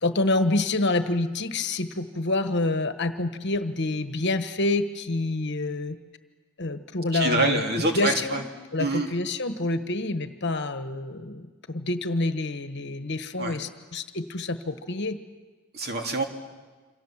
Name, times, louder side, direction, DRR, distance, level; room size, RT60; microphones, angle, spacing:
voice 1, 0.0-6.0 6.6-7.6 7.9-8.4 8.7-15.2, left 2 dB, 50° left, 10 dB, 1.3 m, -27 dB
voice 2, 7.1-8.4 8.8-9.1 13.4-13.6 15.7-16.2, right 2 dB, 45° right, 3 dB, 2.8 m, -25 dB
28.0 x 26.0 x 7.4 m, 1.3 s
head